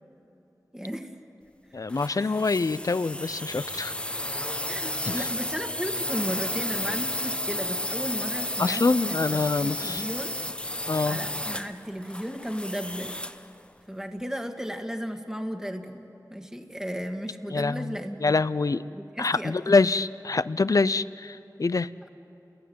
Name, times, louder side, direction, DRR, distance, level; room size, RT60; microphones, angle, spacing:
voice 1, 0.7-1.1 1.7-1.8 2.2-2.4 4.7-10.4 11.1-13.2 13.9-18.3 18.9-19.7, equal, 10° right, 4 dB, 2.0 m, -35 dB
voice 2, 1.7-4.0 5.1-5.3 8.6-10.0 10.9-11.2 17.5-17.9 18.2-18.8 19.2-21.9, left 3 dB, 55° left, 15 dB, 0.6 m, -25 dB
sound 1, 1.9-13.5, left 1 dB, 15° left, 1.1 m, -32 dB
29.5 x 21.5 x 9.5 m, 2.9 s
wide cardioid pair, 50°, 7 cm